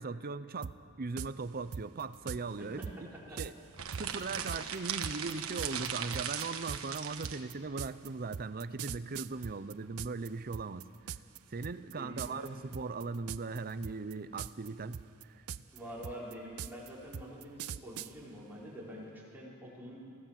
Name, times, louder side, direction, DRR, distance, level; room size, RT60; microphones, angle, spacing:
voice 1, 0.0-2.8 3.3-3.5 4.0-10.9 11.5-15.4, right 4 dB, 45° right, 13 dB, 0.7 m, -39 dB
sound 1, 0.6-0.7 1.2-1.3 1.7-2.4 2.8-2.9 3.4-3.5 3.9-10.3 10.5-11.4 11.6-11.9 12.2-12.5 12.7-13.6 13.8-14.7 14.9-18.1, right 7 dB, 80° right, 0.5 m, -41 dB
sound 2, 3.7-7.4, right 8 dB, 65° right, 1.3 m, -38 dB
voice 2, 11.8-12.5 15.7-20.0, equal, 10° right, -6 dB, 5.1 m, -46 dB
24.0 x 16.0 x 7.6 m, 2.3 s
head